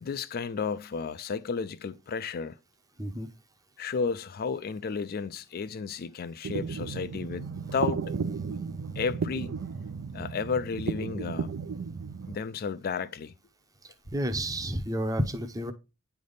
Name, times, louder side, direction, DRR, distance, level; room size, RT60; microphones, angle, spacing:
voice 1, 0.0-2.6 3.8-8.1 9.0-9.5 10.1-11.5 12.3-13.4, left 5 dB, 45° left, 0.4 m, -32 dB
sound 1, 6.4-12.4, right 5 dB, 65° right, 0.4 m, -34 dB
voice 2, 14.1-15.7, equal, 15° right, 0.7 m, -30 dB
9.3 x 3.4 x 3.9 m
head